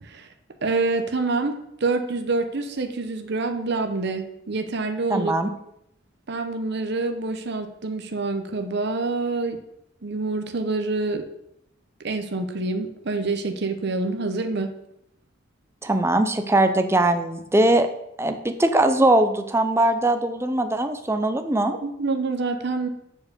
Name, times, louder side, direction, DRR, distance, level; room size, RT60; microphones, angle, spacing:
voice 1, 0.6-5.3 6.3-9.6 10.0-11.3 12.0-14.7 21.8-22.9, right 3 dB, 55° right, 7 dB, 0.7 m, -26 dB
voice 2, 5.1-5.5 15.8-17.9 18.2-21.8, right 1 dB, 15° right, 8 dB, 0.5 m, -21 dB
7.1 x 4.5 x 6.6 m, 0.79 s
head